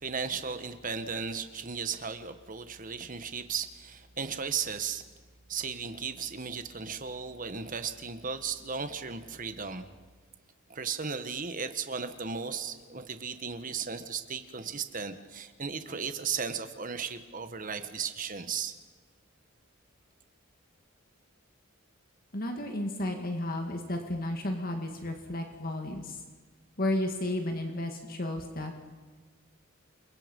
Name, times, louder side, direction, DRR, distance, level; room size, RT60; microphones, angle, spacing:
voice 1, 0.0-5.0 5.5-9.9 10.7-18.7, right 6 dB, 40° right, 9 dB, 1.5 m, -35 dB
voice 2, 22.3-26.2 26.8-28.9, left 1 dB, 45° left, 4 dB, 2.1 m, -33 dB
29.0 x 23.5 x 5.4 m, 1.4 s
head